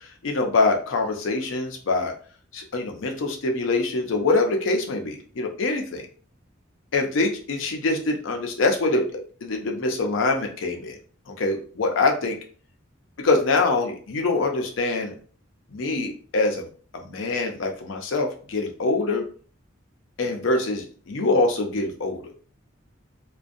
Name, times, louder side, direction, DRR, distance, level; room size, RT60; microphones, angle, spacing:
voice 1, 0.2-2.1 2.5-6.0 6.9-9.1 9.4-10.9 11.3-12.4 13.2-15.1 15.7-16.7 16.9-19.2 20.2-22.2, left 3 dB, 75° left, 3 dB, 0.5 m, -24 dB
2.5 x 2.2 x 2.5 m, 0.42 s
head